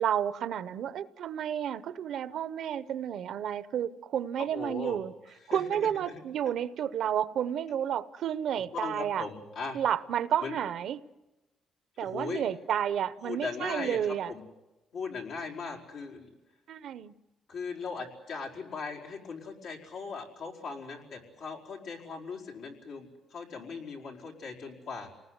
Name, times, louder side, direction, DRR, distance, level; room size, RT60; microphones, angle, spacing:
voice 1, 0.0-5.1 5.5-9.3 9.7-11.0 12.0-14.3 16.7-17.1, right 9 dB, 70° right, 0.8 m, -31 dB
voice 2, 4.5-5.0 5.4-6.2 8.5-9.8 10.4-10.6 12.0-12.4 13.2-14.4 14.9-16.3 17.5-25.1, left 5 dB, 80° left, 5.0 m, -39 dB
28.5 x 19.5 x 8.1 m
cardioid pair, 90°, 0 cm